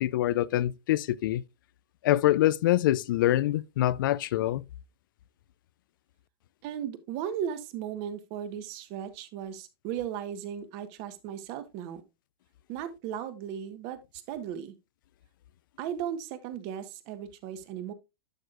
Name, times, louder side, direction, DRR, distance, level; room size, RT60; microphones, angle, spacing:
voice 1, 0.0-1.4 2.0-4.6, left 14 dB, 55° left, 0.4 m, -25 dB
voice 2, 6.6-12.0 12.7-14.7 15.8-17.9, right 9 dB, 40° right, 1.2 m, -36 dB
11.5 x 6.3 x 2.5 m
hypercardioid pair, 150°, 13 cm